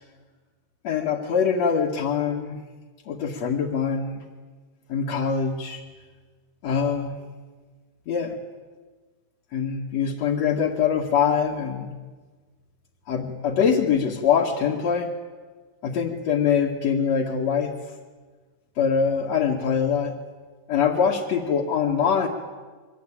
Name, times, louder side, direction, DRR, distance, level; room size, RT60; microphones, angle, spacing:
voice 1, 0.8-2.6 3.0-4.2 4.9-5.8 6.6-7.2 8.1-8.4 9.5-11.9 13.1-15.1 15.8-17.7 18.8-20.1 20.7-22.3, left 6 dB, 50° left, -4 dB, 2.9 m, -23 dB
28.5 x 23.5 x 8.9 m, 1.4 s
omnidirectional pair, 4.6 m